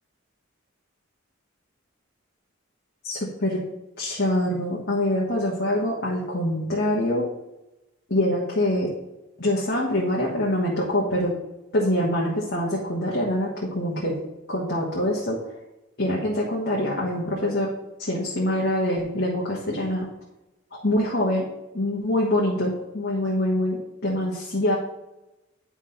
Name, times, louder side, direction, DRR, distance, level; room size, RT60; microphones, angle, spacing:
voice 1, 3.0-3.6 4.0-7.3 8.1-8.9 9.4-11.4 11.7-14.2 14.5-15.4 16.0-17.7 18.0-20.1 20.7-21.5 21.7-24.8, left 1 dB, 50° left, -4 dB, 1.4 m, -24 dB
9.9 x 3.6 x 5.7 m, 0.95 s
head